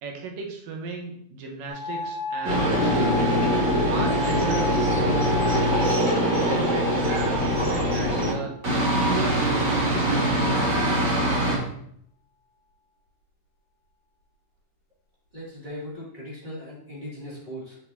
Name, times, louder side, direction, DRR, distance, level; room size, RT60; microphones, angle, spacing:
voice 1, 0.0-3.2 3.9-5.2 5.5-8.5 9.1-10.8, right 4 dB, 85° right, 2 dB, 2.7 m, -36 dB
sound 1, 1.7-8.6 9.5-10.1, left 2 dB, 45° left, 3.5 m, -33 dB
sound 2, 2.4-8.3 8.6-11.6, equal, 40° right, 1.7 m, -23 dB
voice 2, 15.3-17.8, equal, 15° right, -8 dB, 1.9 m, -38 dB
7.0 x 5.9 x 2.7 m, 0.70 s
omnidirectional pair, 3.8 m